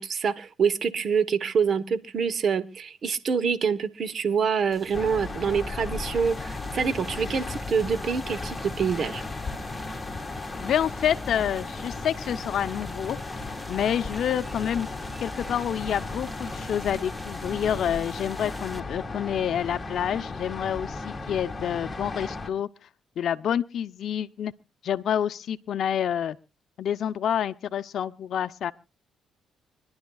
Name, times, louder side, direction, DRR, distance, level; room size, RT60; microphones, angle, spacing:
voice 1, 0.0-9.2, right 6 dB, 55° right, 1.0 m, -26 dB
sound 1, 4.7-18.8, right 1 dB, 15° right, 1.5 m, -45 dB
sound 2, 4.9-22.5, left 3 dB, 20° left, 1.9 m, -35 dB
voice 2, 10.6-14.9 15.2-22.7 23.2-24.5 24.8-26.4 26.8-28.7, left 9 dB, 65° left, 0.6 m, -28 dB
25.5 x 11.5 x 2.3 m
cardioid pair, 90°, 0 cm